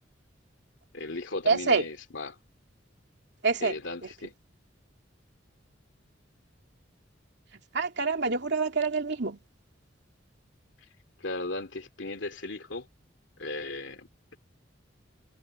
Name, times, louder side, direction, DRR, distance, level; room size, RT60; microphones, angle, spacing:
voice 1, 0.9-2.4 3.6-4.3 11.2-12.9 13.4-14.4, left 2 dB, 70° left, 2.9 m, -37 dB
voice 2, 1.5-1.8 3.4-3.8 7.7-9.4, right 4 dB, 65° right, 2.7 m, -26 dB
head